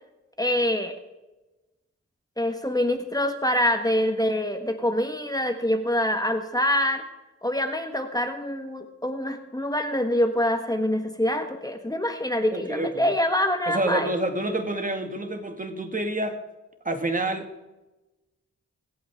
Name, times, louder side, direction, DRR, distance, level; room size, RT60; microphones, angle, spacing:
voice 1, 0.4-0.9 2.4-7.0 7.4-14.1, left 1 dB, 15° left, 1.4 m, -25 dB
voice 2, 12.5-13.1 13.7-16.4 16.8-17.7, right 2 dB, 25° right, 2.0 m, -28 dB
24.0 x 8.7 x 3.6 m
cardioid pair, 65°, 30 cm